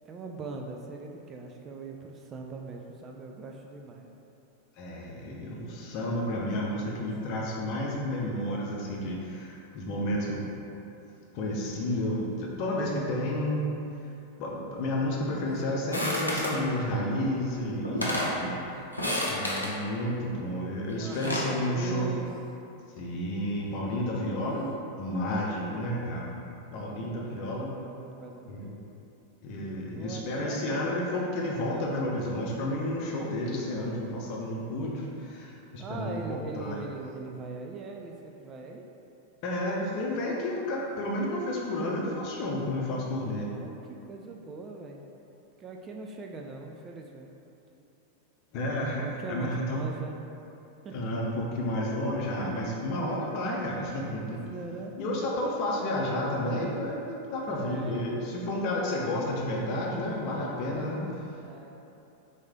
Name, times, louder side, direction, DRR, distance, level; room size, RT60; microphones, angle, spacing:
voice 1, 0.1-4.2 6.3-7.1 15.2-15.9 18.0-19.5 21.0-22.3 25.2-25.8 26.7-28.8 29.9-30.7 31.6-31.9 35.8-38.9 43.5-45.0 45.6-47.3 49.0-50.2 50.8-51.2 53.6-54.2 54.5-54.9 57.5-58.3 61.4-61.7, right 3 dB, 25° right, 1 dB, 0.3 m, -41 dB
voice 2, 4.8-10.4 11.3-13.8 14.4-18.6 19.3-22.1 23.0-27.7 28.5-28.7 29.4-36.8 39.4-43.5 48.5-49.0 49.3-49.8 50.9-54.4 55.0-61.3, left 1 dB, 45° left, -2 dB, 0.7 m, -31 dB
sound 1, 15.9-16.6 17.5-17.6 17.8-18.4 18.9-19.7 20.9-21.5, left 1 dB, 85° left, 0.6 m, -30 dB
4.0 x 3.2 x 3.6 m, 2.8 s
figure-of-eight pair, 90°, 0 cm